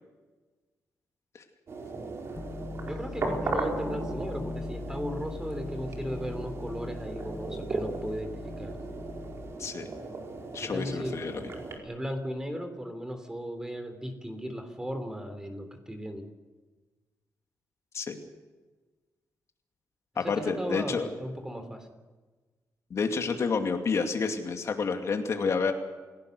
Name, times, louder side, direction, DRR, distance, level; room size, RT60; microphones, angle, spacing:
sound 1, 1.7-11.8, right 3 dB, 50° right, 4.8 m, -37 dB
sound 2, 2.4-9.5, left 3 dB, 30° left, 1.5 m, -40 dB
voice 1, 2.9-8.8 10.6-11.4 11.8-16.3 20.2-21.9, equal, 10° right, 7 dB, 3.4 m, -36 dB
voice 2, 10.5-11.5 17.9-18.2 20.2-21.1 22.9-25.7, left 5 dB, 55° left, 4 dB, 2.5 m, -29 dB
28.5 x 17.5 x 6.7 m, 1.3 s
cardioid pair, 120°, 6 cm